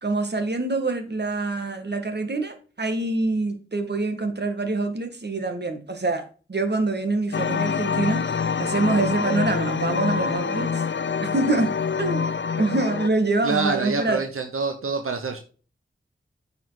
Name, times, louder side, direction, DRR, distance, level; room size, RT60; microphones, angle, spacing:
voice 1, 0.0-6.2 6.5-8.3 8.6-10.8 11.2-12.3 12.6-14.2, right 3 dB, 55° right, 6 dB, 2.1 m, -25 dB
sound 1, 7.3-13.1, left 6 dB, 60° left, 0.6 m, -26 dB
voice 2, 13.4-15.4, right 4 dB, 85° right, 5 dB, 1.2 m, -26 dB
9.3 x 5.9 x 4.1 m, 0.36 s
wide cardioid pair, 55°, 21 cm